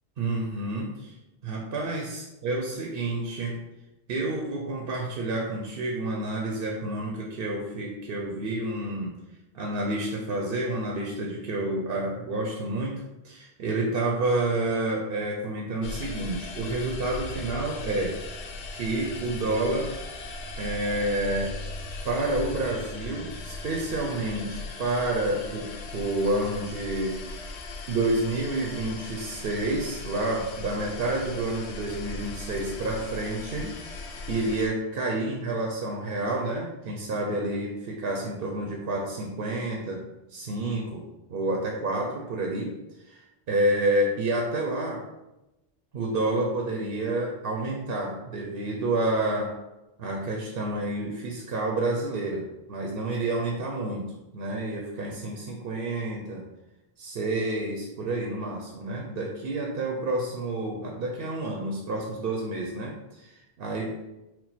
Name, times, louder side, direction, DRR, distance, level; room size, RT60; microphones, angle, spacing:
voice 1, 0.2-1.2 1.4-3.6 4.1-9.2 9.5-18.2 18.7-19.9 20.6-21.6 22.0-27.2 27.9-33.7 34.3-40.0 40.3-42.7 43.1-45.0 45.9-49.5 50.0-56.5 57.0-64.1, right 2 dB, 60° right, 0 dB, 0.8 m, -29 dB
sound 1, 15.8-34.7, left 3 dB, 80° left, 0.9 m, -38 dB
4.4 x 2.1 x 4.0 m, 0.96 s
omnidirectional pair, 1.1 m